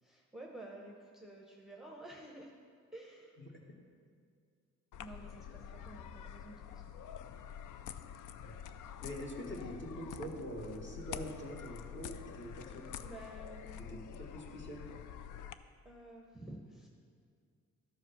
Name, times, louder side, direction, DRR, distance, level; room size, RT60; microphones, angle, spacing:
voice 1, 0.0-2.5 2.9-3.4 5.0-6.9 13.0-14.0 15.8-16.9, right 1 dB, ahead, 0 dB, 0.8 m, -51 dB
sound 1, 4.9-15.5, left 8 dB, 80° left, 0.5 m, -47 dB
voice 2, 9.0-12.9 13.9-14.9, equal, 40° left, -1 dB, 1.8 m, -44 dB
12.5 x 4.9 x 5.8 m, 2.1 s
cardioid pair, 110°, 31 cm